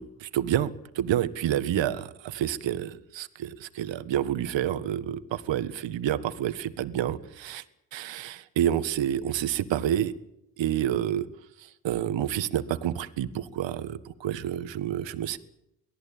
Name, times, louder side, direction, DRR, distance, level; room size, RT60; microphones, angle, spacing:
voice 1, 0.0-7.6 7.9-10.1 10.6-11.2 11.6-15.4, right 11 dB, 80° right, 12 dB, 1.6 m, -29 dB
23.5 x 17.5 x 8.7 m, 0.83 s
cardioid pair, 70°, 44 cm